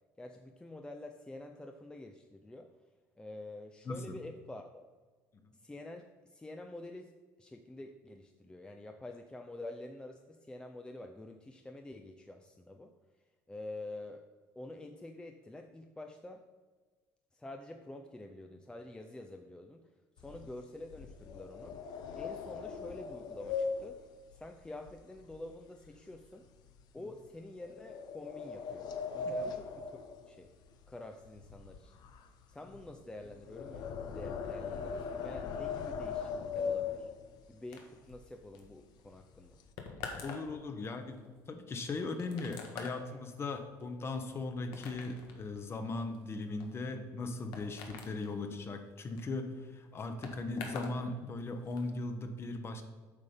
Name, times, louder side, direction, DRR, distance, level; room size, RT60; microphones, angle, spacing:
voice 1, 0.2-2.7 3.2-4.8 5.6-7.1 7.4-12.9 13.5-14.2 14.6-16.4 17.3-19.9 20.2-21.8 22.2-24.0 24.3-26.5 26.9-30.0 30.3-30.5 30.9-31.9 32.5-37.1 37.5-39.6, left 2 dB, 10° left, 4 dB, 0.5 m, -47 dB
voice 2, 3.8-4.2 5.3-5.5 29.2-29.5 40.2-52.8, left 3 dB, 35° left, 7 dB, 1.1 m, -38 dB
sound 1, 20.2-25.5 25.8-26.2 26.7-26.8 27.6-30.9 31.2-37.5 38.1-38.2 38.5-38.7 39.1-39.7, left 5 dB, 65° left, 0.8 m, -40 dB
sound 2, 37.7-51.0 51.3-51.9, left 5 dB, 80° left, 1.4 m, -48 dB
8.4 x 5.6 x 5.1 m, 1.4 s
cardioid pair, 105°, 8 cm